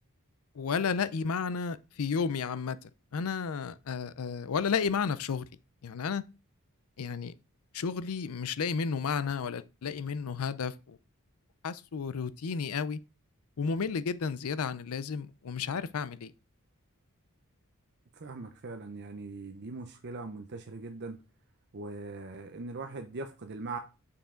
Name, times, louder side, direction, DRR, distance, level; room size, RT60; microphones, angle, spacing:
voice 1, 0.6-2.8 3.1-5.4 5.8-6.2 7.0-7.3 7.7-11.0 11.6-13.0 13.6-16.3, left 6 dB, 75° left, 0.5 m, -32 dB
voice 2, 18.1-21.2 21.7-23.8, right 3 dB, 50° right, 0.7 m, -40 dB
6.8 x 5.6 x 3.7 m
head